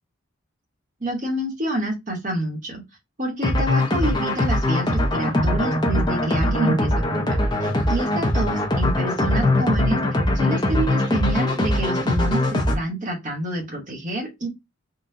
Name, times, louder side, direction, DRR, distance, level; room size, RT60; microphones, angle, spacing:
voice 1, 1.0-2.8 3.2-10.0 10.3-14.5, right 1 dB, 40° right, 1 dB, 1.0 m, -28 dB
sound 1, 3.4-12.8, left 1 dB, 20° left, 0.5 m, -21 dB
3.8 x 2.1 x 2.6 m, 0.21 s
head